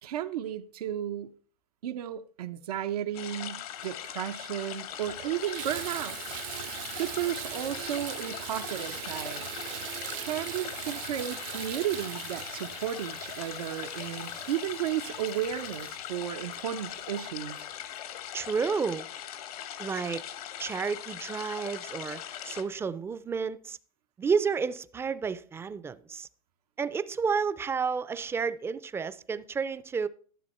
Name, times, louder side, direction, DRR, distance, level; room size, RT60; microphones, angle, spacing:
voice 1, 0.0-1.3 1.8-6.2 7.0-9.5 10.3-17.7, right 11 dB, 90° right, 0.8 m, -34 dB
sound 1, 3.1-22.6, left 11 dB, 75° left, 1.5 m, -40 dB
Water tap faucet / Bathtub (filling or washing), 4.3-4.4 4.9-17.3 18.0-18.1 18.6-18.7, right 16 dB, 60° right, 0.6 m, -41 dB
voice 2, 18.3-19.1 19.8-20.2 20.6-23.8 24.2-26.3 26.8-30.1, right 5 dB, 15° right, 0.4 m, -31 dB
13.0 x 7.1 x 4.3 m
supercardioid pair, 135°, 19 cm